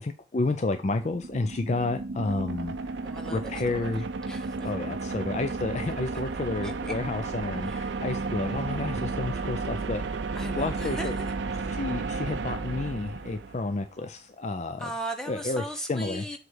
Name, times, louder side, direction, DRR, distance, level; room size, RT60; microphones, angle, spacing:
voice 1, 0.0-2.8 3.2-4.1 4.6-10.0 10.6-11.2 11.6-14.9 15.3-16.2, left 2 dB, 40° left, 0.5 m, -30 dB
sound 1, 0.8-13.8, right 4 dB, 75° right, 0.6 m, -33 dB
voice 2, 3.0-3.9 4.3-4.7 6.6-6.9 7.6-7.9 10.3-11.3 14.8-16.4, right 1 dB, 5° left, 1.0 m, -38 dB
7.7 x 3.2 x 6.2 m
head